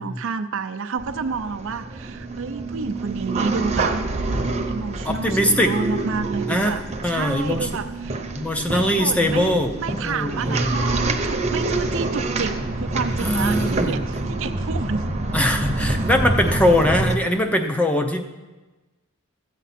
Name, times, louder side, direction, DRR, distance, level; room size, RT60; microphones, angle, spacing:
voice 1, 0.0-3.9 4.7-6.8 7.1-8.3 8.7-15.0, right 4 dB, 65° right, 7 dB, 0.6 m, -29 dB
sound 1, 1.0-17.1, right 2 dB, 30° right, 0.9 m, -26 dB
voice 2, 5.0-5.7 6.5-6.7 7.0-7.7 8.4-10.7 13.2-14.0 15.3-18.2, left 1 dB, 5° left, 5 dB, 0.6 m, -21 dB
13.5 x 8.2 x 4.2 m, 1.2 s
head